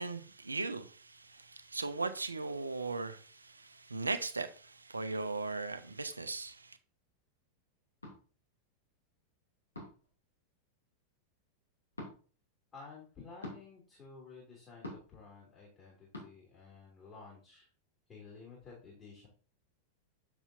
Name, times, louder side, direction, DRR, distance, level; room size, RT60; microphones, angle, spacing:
voice 1, 0.0-6.8, right 3 dB, 80° right, 0.6 m, -38 dB
sound 1, 8.0-8.2 9.7-10.1 11.9-12.1 13.4-13.6 14.8-15.2 16.1-16.3, left 1 dB, 80° left, 2.6 m, -44 dB
voice 2, 12.7-17.7 18.1-19.3, left 4 dB, 25° left, 2.7 m, -53 dB
7.2 x 7.0 x 2.7 m
figure-of-eight pair, 90°, 0 cm